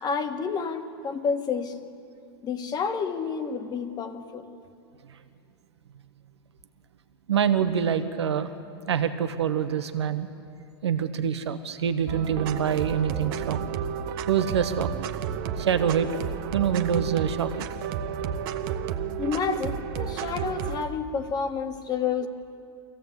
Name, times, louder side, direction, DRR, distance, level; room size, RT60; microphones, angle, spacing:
voice 1, 0.0-1.8 2.4-4.4 19.2-22.3, left 6 dB, 30° left, 7 dB, 1.6 m, -29 dB
voice 2, 7.3-8.5 8.9-10.3 10.8-13.6 14.3-15.1 15.6-16.1 16.5-17.7, right 8 dB, 90° right, 9 dB, 1.2 m, -25 dB
sound 1, 12.1-20.8, right 8 dB, 60° right, 1.1 m, -32 dB
24.0 x 16.0 x 8.2 m, 2.5 s
hypercardioid pair, 110°, 14 cm